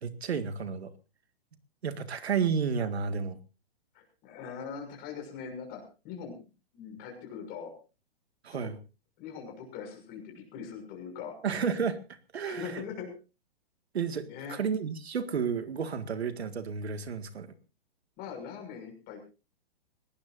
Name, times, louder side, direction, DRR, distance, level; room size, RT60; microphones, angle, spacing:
voice 1, 0.0-0.9 1.8-3.4 8.4-8.8 11.4-12.0 12.3-12.8 13.9-17.5, right 6 dB, 90° right, 10 dB, 1.9 m, -31 dB
voice 2, 3.9-6.3 6.7-7.7 8.5-8.7 9.2-11.3 12.5-13.1 14.2-14.6 18.2-19.2, left 6 dB, 30° left, 3 dB, 6.5 m, -41 dB
22.5 x 18.5 x 2.6 m, 0.32 s
hypercardioid pair, 145°, 31 cm